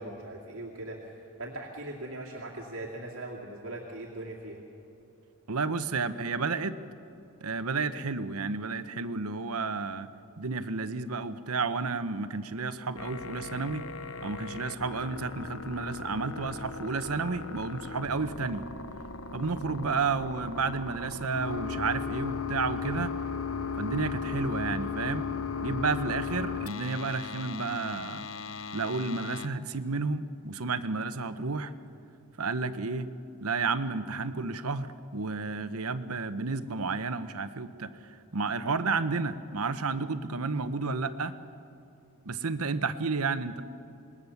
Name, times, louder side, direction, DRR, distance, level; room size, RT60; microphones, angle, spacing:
voice 1, 0.0-4.6, right 1 dB, 70° right, -2 dB, 2.4 m, -40 dB
voice 2, 5.5-6.8 7.4-10.1 10.4-13.9 14.2-18.6 19.3-23.1 23.8-25.3 25.6-28.2 28.7-31.7 32.4-33.1 33.4-41.3 42.3-43.6, right 4 dB, 85° right, 11 dB, 1.0 m, -31 dB
sound 1, 13.0-29.5, left 5 dB, 70° left, 0.8 m, -37 dB
27.0 x 20.5 x 7.2 m, 2.7 s
head